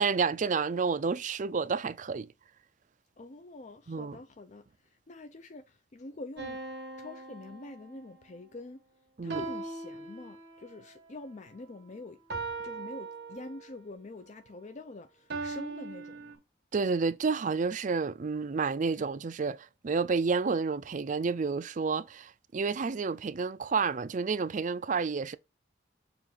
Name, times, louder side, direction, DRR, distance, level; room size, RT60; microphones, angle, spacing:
voice 1, 0.0-2.3 3.9-4.2 9.2-9.4 16.7-25.4, right 5 dB, 45° right, 0.4 m, -30 dB
voice 2, 3.2-6.6 7.0-8.8 9.2-12.2 12.6-16.4, left 2 dB, 40° left, 0.5 m, -46 dB
sound 1, 6.4-8.2 9.3-10.8 12.3-13.8 15.3-16.4, right 3 dB, 60° right, 1.8 m, -40 dB
7.0 x 2.5 x 5.4 m
head